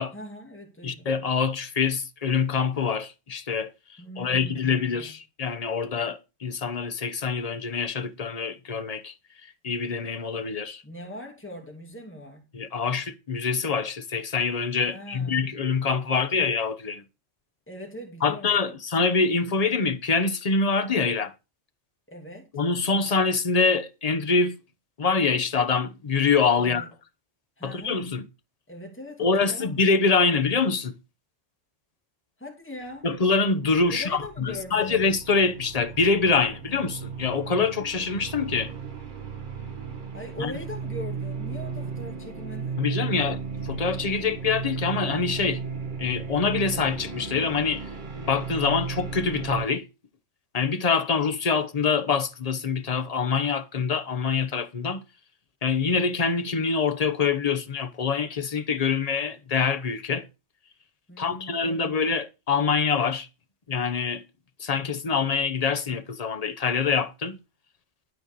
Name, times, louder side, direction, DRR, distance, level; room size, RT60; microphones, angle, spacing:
voice 1, 0.1-1.1 4.0-5.1 10.8-12.4 14.9-15.5 17.7-18.8 22.1-22.5 26.6-26.9 27.6-28.0 28.7-29.8 32.4-33.1 33.9-35.0 40.1-42.8 61.1-62.0, left 1 dB, 10° left, 2.5 m, -41 dB
voice 2, 0.8-9.1 9.6-10.8 12.5-17.0 18.2-21.3 22.5-24.6 25.0-26.8 27.6-28.3 29.2-30.9 33.0-38.7 40.4-40.5 42.8-45.6 46.0-47.9 48.3-49.9 50.5-55.0 55.6-60.3 61.2-63.3 63.7-64.2 64.6-67.4, left 5 dB, 35° left, 1.0 m, -25 dB
sound 1, 33.3-49.7, right 5 dB, 40° right, 1.6 m, -35 dB
12.5 x 4.4 x 6.9 m
omnidirectional pair, 1.3 m